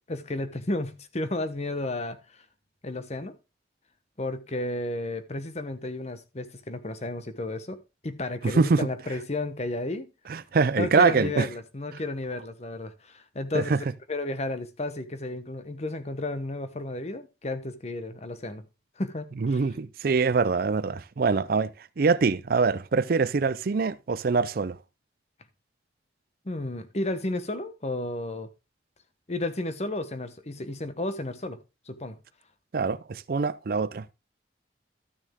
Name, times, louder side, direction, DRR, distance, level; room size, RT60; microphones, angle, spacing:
voice 1, 0.1-2.2 2.8-3.3 4.2-10.1 10.8-13.7 14.1-18.6 19.0-19.6 26.4-28.5 29.3-31.6 31.9-32.2, left 2 dB, 35° left, 1.0 m, -32 dB
voice 2, 8.4-8.9 10.3-11.5 13.5-13.8 19.4-21.7 22.0-24.8 32.7-34.1, right 4 dB, 55° right, 0.4 m, -24 dB
12.5 x 6.3 x 3.6 m
head